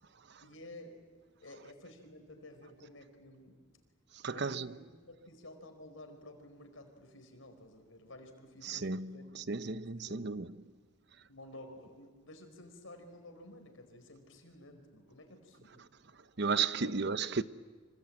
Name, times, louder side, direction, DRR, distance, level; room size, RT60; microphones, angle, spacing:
voice 1, 0.4-1.0 1.4-3.6 4.3-4.8 5.1-9.2 9.6-10.4 11.3-15.8 16.8-17.0, left 1 dB, 75° left, 4.9 m, -53 dB
voice 2, 4.1-4.8 8.6-10.5 16.4-17.4, right 5 dB, 55° right, 0.8 m, -34 dB
26.0 x 25.5 x 8.9 m
head